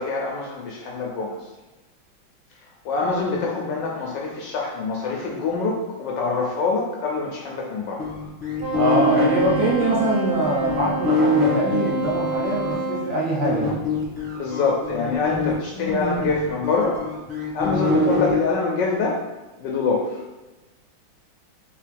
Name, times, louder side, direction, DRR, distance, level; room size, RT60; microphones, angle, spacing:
voice 1, 0.0-1.5 2.8-8.1 14.4-17.0 17.5-19.2 19.6-20.2, left 4 dB, 70° left, -1 dB, 1.1 m, -25 dB
sound 1, 8.0-12.7 13.4-18.3, left 2 dB, 15° left, 1.1 m, -25 dB
Wind instrument woodwind instrument, 8.6-13.1, right 3 dB, 45° right, 1.0 m, -27 dB
voice 2, 8.7-13.8, right 1 dB, 65° right, -4 dB, 1.6 m, -23 dB
3.7 x 3.7 x 3.3 m, 1.1 s
omnidirectional pair, 2.3 m